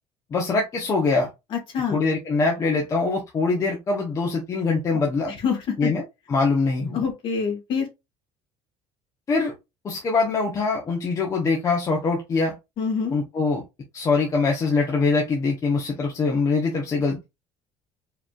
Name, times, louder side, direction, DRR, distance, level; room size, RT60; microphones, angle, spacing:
voice 1, 0.3-1.3 1.9-5.3 5.8-6.0 6.3-7.1 9.3-9.5 9.8-12.5 13.1-13.6 13.9-17.2, left 4 dB, 25° left, 0.9 m, -23 dB
voice 2, 1.5-2.0 5.4-5.9 6.9-7.9 12.8-13.1, left 6 dB, 45° left, 1.8 m, -26 dB
4.8 x 3.0 x 2.4 m
cardioid pair, 160°, 12 cm